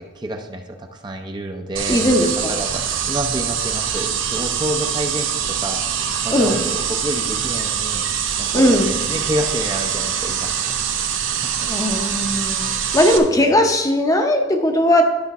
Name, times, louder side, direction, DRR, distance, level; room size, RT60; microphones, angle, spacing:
voice 1, 0.1-5.8 6.2-8.1 8.4-11.7 13.2-13.4, equal, 20° right, 4 dB, 0.6 m, -29 dB
sound 1, 1.8-13.2, right 8 dB, 85° right, 0.9 m, -24 dB
voice 2, 1.9-2.6 6.3-6.6 8.5-9.0 11.7-12.6 12.9-15.1, left 1 dB, 20° left, 4 dB, 0.7 m, -18 dB
11.5 x 5.8 x 4.1 m, 1.2 s
head